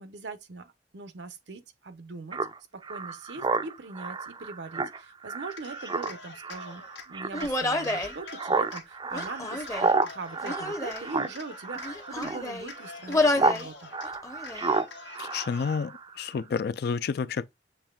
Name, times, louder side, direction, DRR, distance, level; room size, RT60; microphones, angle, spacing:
voice 1, 0.0-2.4 2.7-13.9, right 3 dB, 80° right, 0.8 m, -41 dB
Speech synthesizer, 2.3-13.6 13.9-16.1, right 4 dB, 25° right, 0.4 m, -31 dB
Cheering, 5.4-7.1 7.4-8.8 9.2-10.6 10.9-12.3 12.6-14.1 14.4-15.8, left 5 dB, 90° left, 1.2 m, -46 dB
Human voice, 7.3-8.1 9.1-10.0 10.4-11.1 11.7-12.7 13.1-13.7 14.0-14.7, left 2 dB, 20° left, 0.7 m, -29 dB
voice 2, 15.2-17.5, left 5 dB, 60° left, 0.4 m, -30 dB
7.2 x 3.1 x 2.3 m
head